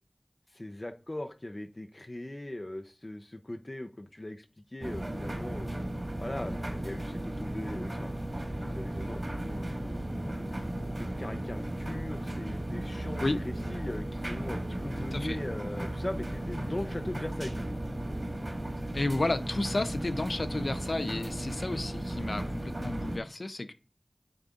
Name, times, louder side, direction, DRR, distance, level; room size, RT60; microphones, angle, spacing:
voice 1, 0.5-5.7 6.2-8.1 8.5-10.2 11.0-17.7, left 1 dB, 45° left, 0.6 m, -40 dB
sound 1, 4.8-23.2, right 1 dB, 45° right, 1.8 m, -35 dB
voice 2, 18.9-23.7, left 2 dB, 80° left, 0.6 m, -32 dB
9.5 x 3.9 x 3.7 m
wide cardioid pair, 45°, 0 cm